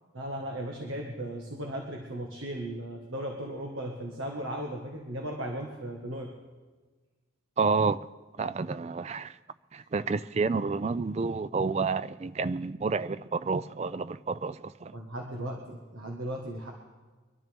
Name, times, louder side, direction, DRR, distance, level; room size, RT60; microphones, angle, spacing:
voice 1, 0.1-6.3 14.9-16.7, right 1 dB, 85° right, 1.6 m, -36 dB
voice 2, 7.6-8.1 8.4-9.4 9.7-14.9, right 4 dB, 30° right, 0.3 m, -29 dB
23.5 x 12.5 x 3.5 m
head